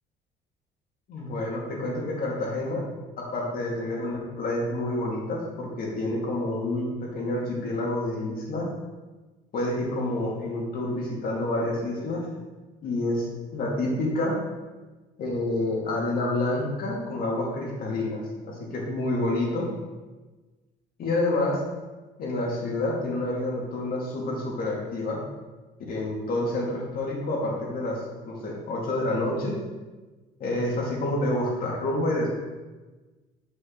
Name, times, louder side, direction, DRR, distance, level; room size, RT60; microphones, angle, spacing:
voice 1, 1.1-2.8 3.2-8.7 9.5-12.2 12.8-14.4 15.2-19.7 21.0-21.6 22.2-25.2 25.9-28.0 28.2-29.6 30.4-32.3, left 1 dB, 60° left, -3 dB, 2.4 m, -28 dB
8.0 x 5.4 x 3.9 m, 1.2 s
cardioid pair, 110°, 17 cm